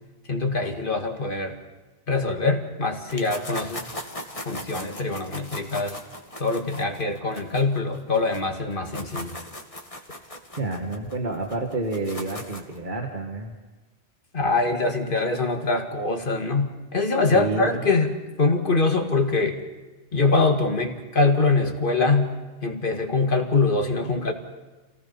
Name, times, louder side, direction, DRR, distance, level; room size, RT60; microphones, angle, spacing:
voice 1, 0.3-1.6 2.1-3.8 4.5-6.0 6.4-9.3 14.3-19.6 20.1-22.4 22.6-24.3, left 3 dB, 45° left, 4 dB, 2.1 m, -23 dB
sound 1, 3.1-8.4 8.7-12.8, left 1 dB, 30° left, 2.2 m, -38 dB
voice 2, 10.6-13.5 17.3-17.9, right 2 dB, 40° right, 3 dB, 1.9 m, -29 dB
27.5 x 18.0 x 5.6 m, 1.2 s
omnidirectional pair, 1.2 m